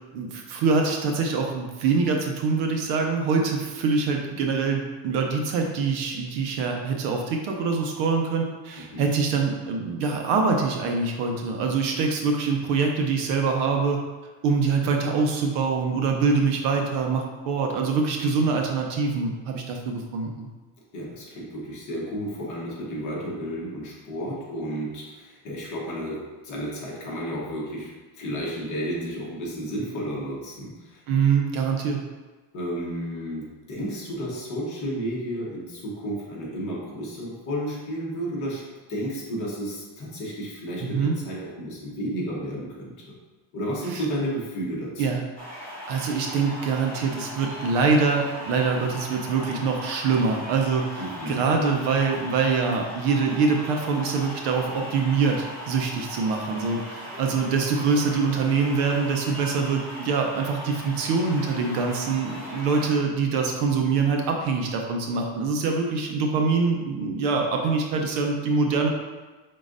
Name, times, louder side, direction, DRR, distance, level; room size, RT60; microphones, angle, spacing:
voice 1, 0.1-14.0 14.4-20.5 31.1-32.0 40.8-41.2 43.9-44.0 45.0-45.2 45.9-68.9, right 4 dB, 55° right, 2 dB, 0.6 m, -24 dB
voice 2, 8.8-9.1 20.9-31.0 32.5-38.6 38.9-43.1 43.5-45.1 51.0-51.5, equal, 35° left, -4 dB, 1.1 m, -32 dB
sound 1, 45.4-63.0, equal, ahead, 0.7 m, -38 dB
5.1 x 3.8 x 2.5 m, 1.3 s
cardioid pair, 170°, 50 cm